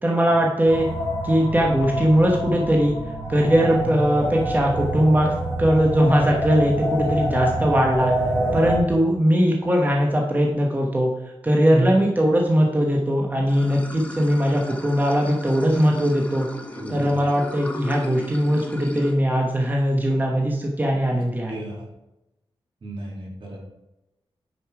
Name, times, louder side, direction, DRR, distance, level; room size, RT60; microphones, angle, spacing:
voice 1, 0.0-0.9 1.2-2.9 3.3-5.3 5.6-8.1 8.5-11.1 11.4-16.5 16.9-21.6, equal, 20° right, -1 dB, 1.2 m, -20 dB
sound 1, 0.7-8.8, right 1 dB, 35° right, 2.9 m, -26 dB
Water / Sink (filling or washing), 13.5-19.1, left 1 dB, 15° left, 1.1 m, -36 dB
voice 2, 16.7-17.2 21.5-21.9 22.8-23.6, right 2 dB, 60° right, -3 dB, 3.2 m, -30 dB
9.6 x 5.3 x 4.8 m, 0.92 s
wide cardioid pair, 110°, 10 cm